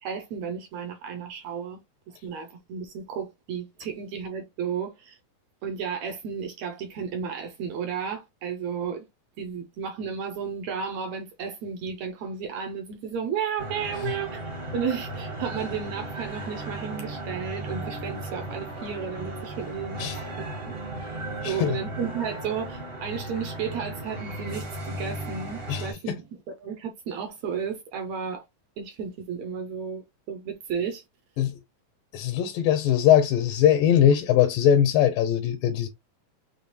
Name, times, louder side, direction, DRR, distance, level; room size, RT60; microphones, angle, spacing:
voice 1, 0.0-1.8 2.2-5.2 5.6-9.0 9.4-20.1 20.4-20.5 21.4-26.3 26.6-28.4 28.8-31.0, right 7 dB, 75° right, 1.6 m, -33 dB
sound 1, 13.6-25.9, right 1 dB, 60° right, 0.6 m, -36 dB
voice 2, 21.4-21.8 25.7-26.2 31.4-31.5 32.1-35.9, left 10 dB, 80° left, 2.2 m, -21 dB
6.8 x 2.3 x 3.1 m
omnidirectional pair, 4.0 m